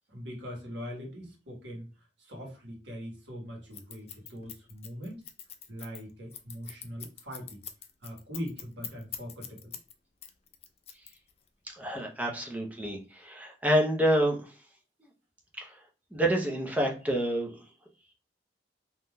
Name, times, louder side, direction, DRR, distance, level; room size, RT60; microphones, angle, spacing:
voice 1, 0.1-5.2 5.7-7.6 8.0-9.8, equal, 90° right, -1 dB, 1.3 m, -41 dB
Scissors, 3.7-9.9 10.2-11.5, left 9 dB, 35° left, 0.4 m, -43 dB
voice 2, 11.7-14.4 15.6-15.8 16.1-17.5, right 1 dB, 10° right, 0 dB, 0.6 m, -28 dB
3.4 x 2.7 x 2.2 m, 0.34 s
head